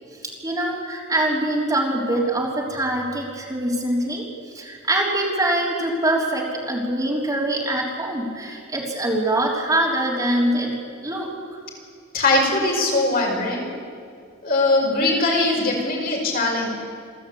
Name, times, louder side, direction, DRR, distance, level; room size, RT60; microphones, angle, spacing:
voice 1, 0.2-4.2 4.5-10.7 11.0-11.6, right 1 dB, 20° right, -3 dB, 3.6 m, -24 dB
voice 2, 12.1-13.7 14.4-16.7, left 2 dB, 50° left, -1 dB, 5.6 m, -21 dB
28.0 x 13.5 x 8.6 m, 2.2 s
head